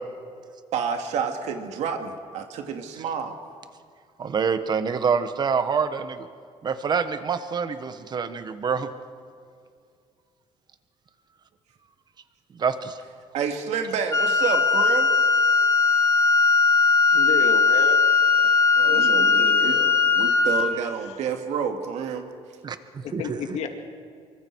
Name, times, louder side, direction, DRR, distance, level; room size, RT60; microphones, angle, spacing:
voice 1, 0.7-3.3 13.3-15.1 18.8-19.8 20.0-22.3, right 6 dB, 75° right, 4 dB, 2.2 m, -29 dB
voice 2, 4.2-6.3 6.6-8.9 12.6-13.0 22.6-23.4, right 6 dB, 40° right, 10 dB, 1.3 m, -26 dB
Wind instrument woodwind instrument, 14.1-20.8, left 4 dB, 25° left, 1.7 m, -19 dB
voice 3, 17.1-18.0 18.8-20.0 21.0-21.1 23.0-23.7, left 7 dB, 70° left, 4 dB, 2.2 m, -32 dB
25.5 x 24.0 x 4.7 m, 2.3 s
cardioid pair, 130°, 12 cm